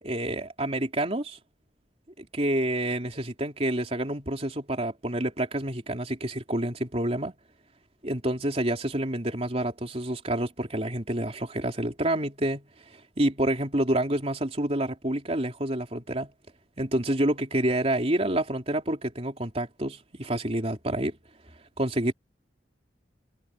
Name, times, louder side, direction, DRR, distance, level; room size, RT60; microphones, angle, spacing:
voice 1, 0.0-1.4 2.2-7.3 8.0-12.6 13.2-16.3 16.8-21.2 21.8-22.1, right 1 dB, 35° right, 3.5 m, -28 dB
head